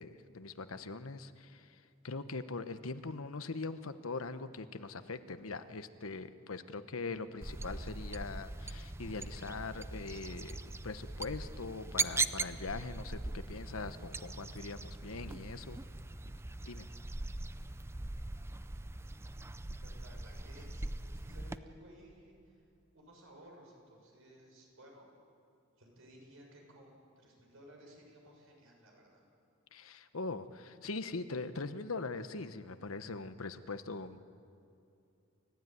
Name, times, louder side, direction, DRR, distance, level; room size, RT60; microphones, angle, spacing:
voice 1, 0.0-10.6 10.8-15.8 16.7-16.8 29.7-34.3, left 3 dB, 90° left, 11 dB, 1.0 m, -42 dB
sound 1, 7.4-21.6, right 3 dB, 10° right, 0.5 m, -40 dB
voice 2, 19.8-22.6 22.9-25.1 25.7-29.2, equal, 80° right, 0 dB, 6.9 m, -57 dB
29.0 x 15.5 x 9.3 m, 2.7 s
head